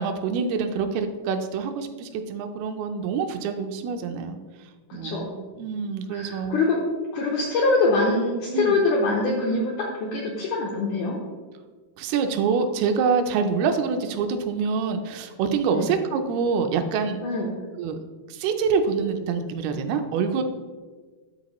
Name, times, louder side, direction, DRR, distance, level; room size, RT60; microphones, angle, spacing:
voice 1, 0.0-4.4 4.9-6.6 8.5-8.8 12.0-17.2 17.8-18.0 18.3-20.4, right 5 dB, 85° right, 6 dB, 2.5 m, -26 dB
voice 2, 4.9-5.3 6.1-6.8 7.1-11.2 15.7-15.9 17.2-17.6, left 3 dB, 80° left, -2 dB, 1.8 m, -24 dB
12.5 x 4.3 x 3.0 m, 1.4 s
omnidirectional pair, 4.5 m